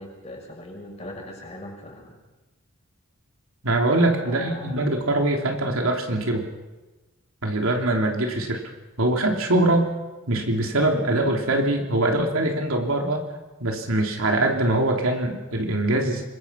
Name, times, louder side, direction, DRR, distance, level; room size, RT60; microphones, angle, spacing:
voice 1, 0.0-2.2 4.2-4.8, left 1 dB, 30° left, 0 dB, 6.3 m, -39 dB
voice 2, 3.6-6.5 7.4-8.6 9.0-9.9 10.3-13.2 13.6-16.3, right 1 dB, 75° right, 2 dB, 3.3 m, -23 dB
25.5 x 21.5 x 5.8 m, 1.2 s
head